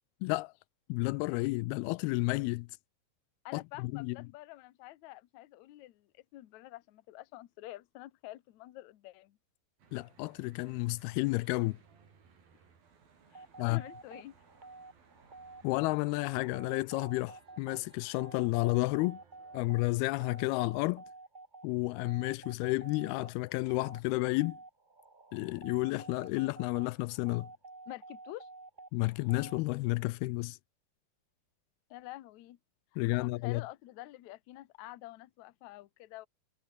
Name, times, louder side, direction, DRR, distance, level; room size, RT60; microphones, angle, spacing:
voice 1, 0.2-0.5 0.9-2.7 3.5-4.2 9.9-11.8 13.6-13.8 15.6-19.2 19.5-21.0 21.6-24.6 25.3-27.5 28.9-30.6 33.0-33.6, left 23 dB, 85° left, 2.4 m, -31 dB
voice 2, 3.5-9.4 13.3-14.4 27.9-28.5 31.9-32.6 32.9-36.3, left 16 dB, 65° left, 1.9 m, -48 dB
Church bell / Traffic noise roadway noise, 9.8-19.8, right 6 dB, 65° right, 6.3 m, -63 dB
sound 1, 13.3-29.6, right 3 dB, 30° right, 0.9 m, -51 dB
omnidirectional pair, 4.5 m